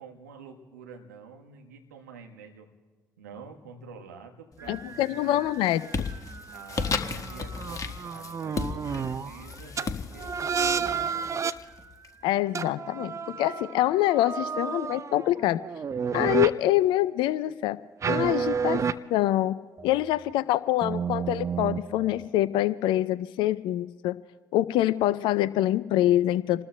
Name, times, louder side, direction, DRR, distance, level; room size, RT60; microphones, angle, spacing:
voice 1, 0.0-2.7 3.2-5.4 6.5-11.3, right 4 dB, 85° right, 1 dB, 1.2 m, -47 dB
sound 1, 4.6-5.1 5.4-12.1, left 5 dB, 40° left, 1.4 m, -35 dB
sound 2, 4.6-9.4 9.8-9.9 10.2-11.5 12.5-16.5 18.0-18.9 19.8-20.3 20.8-22.3, right 6 dB, 35° right, 0.6 m, -31 dB
voice 2, 4.7-6.1 12.2-15.6 16.1-17.8 18.1-18.8 19.1-19.6 19.8-24.1 24.5-26.6, left 14 dB, 65° left, 17 dB, 0.4 m, -25 dB
29.0 x 20.0 x 2.2 m, 1.3 s
hypercardioid pair, 50°, 9 cm